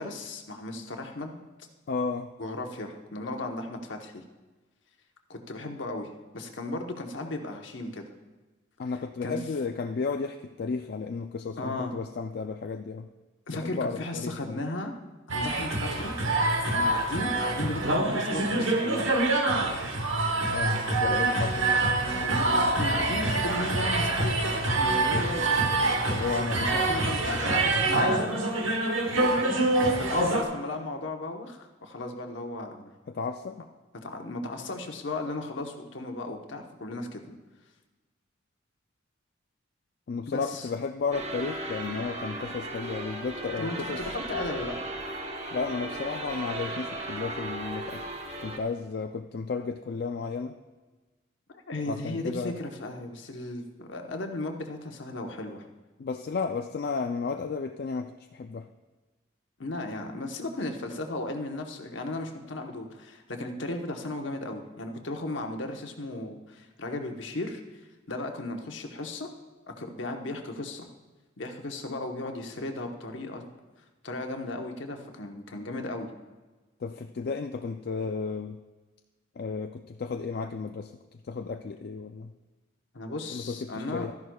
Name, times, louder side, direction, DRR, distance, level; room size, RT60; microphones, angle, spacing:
voice 1, 0.0-1.4 2.4-4.2 5.3-8.1 9.2-9.4 11.6-11.9 13.5-15.0 15.3-16.1 16.6-19.2 22.2-25.6 26.6-28.4 30.0-32.9 34.0-37.4 40.3-40.7 43.6-44.8 51.5-55.6 59.6-67.8 68.1-69.3 69.7-70.9 71.4-73.4 74.0-76.1 82.9-84.1, left 2 dB, 70° left, 4 dB, 1.0 m, -36 dB
voice 2, 1.9-2.3 8.8-13.1 13.5-14.6 20.4-21.7 26.1-26.7 29.1-29.5 33.1-33.7 40.1-44.0 45.5-48.0 48.4-50.6 51.9-52.6 56.0-58.7 76.8-78.6 79.4-82.3 83.3-84.1, left 4 dB, 50° left, 5 dB, 0.4 m, -33 dB
sound 1, 15.3-30.4, right 2 dB, 85° right, 1.2 m, -26 dB
sound 2, 41.1-48.6, right 2 dB, 35° right, 1.0 m, -36 dB
13.0 x 10.5 x 2.3 m, 1.2 s
head